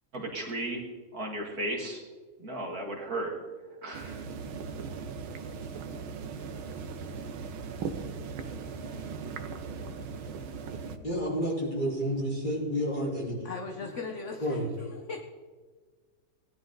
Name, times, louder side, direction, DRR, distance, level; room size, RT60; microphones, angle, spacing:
voice 1, 0.1-0.8 1.1-2.0 2.4-3.3 3.8-4.2, right 1 dB, 45° right, 0 dB, 2.3 m, -35 dB
sound 1, 3.9-11.0, right 5 dB, 80° right, 1.8 m, -38 dB
voice 2, 11.0-13.4 14.4-14.7, equal, 20° left, -5 dB, 4.4 m, -30 dB
voice 3, 13.4-15.2, left 4 dB, 45° left, 3 dB, 1.1 m, -39 dB
18.0 x 11.0 x 3.9 m, 1.4 s
omnidirectional pair, 2.2 m